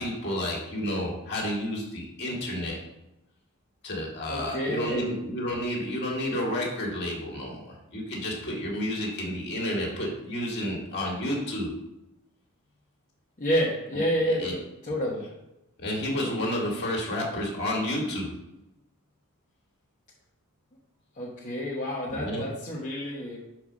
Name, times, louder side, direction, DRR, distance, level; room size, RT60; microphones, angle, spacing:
voice 1, 0.0-2.8 3.8-11.7 14.4-14.6 15.8-18.3 22.1-22.5, left 1 dB, 50° left, -2 dB, 2.3 m, -30 dB
voice 2, 4.3-5.1 13.4-14.6 14.8-15.3 21.2-23.4, equal, 35° left, -6 dB, 1.2 m, -29 dB
5.6 x 4.6 x 6.3 m, 0.92 s
head